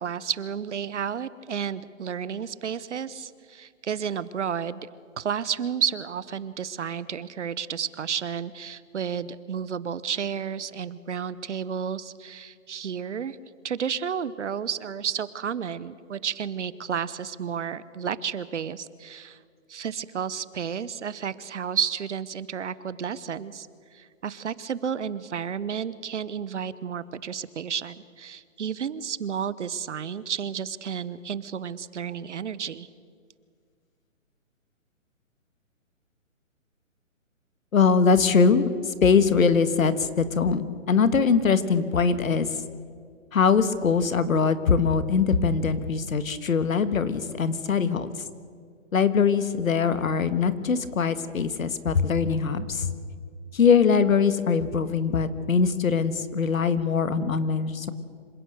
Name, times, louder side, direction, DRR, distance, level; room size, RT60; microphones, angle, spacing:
voice 1, 0.0-4.9 5.2-13.4 13.6-19.4 19.7-23.7 23.9-32.9, right 7 dB, 60° right, 17 dB, 1.0 m, -31 dB
voice 2, 37.7-42.6 43.3-48.1 48.9-52.9 53.5-57.9, left 5 dB, 90° left, 12 dB, 1.8 m, -22 dB
26.0 x 17.0 x 6.7 m, 2.1 s
hypercardioid pair, 170°, 39 cm